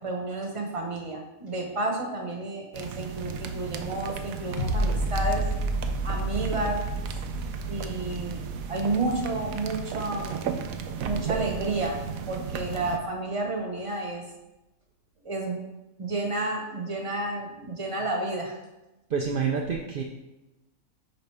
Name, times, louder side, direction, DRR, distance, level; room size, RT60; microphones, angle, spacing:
voice 1, 0.0-5.4 6.0-6.8 7.6-10.5 11.0-12.0 12.3-14.2 15.2-15.6 16.0-18.6, right 2 dB, 25° right, 1 dB, 1.1 m, -31 dB
sound 1, 2.7-13.0, right 6 dB, 75° right, 1.0 m, -35 dB
sound 2, 4.6-11.6 12.1-12.2, right 2 dB, 75° left, 1.6 m, -31 dB
voice 2, 19.1-20.0, right 6 dB, 55° right, 0 dB, 0.6 m, -27 dB
9.7 x 4.0 x 3.4 m, 0.99 s
omnidirectional pair, 1.5 m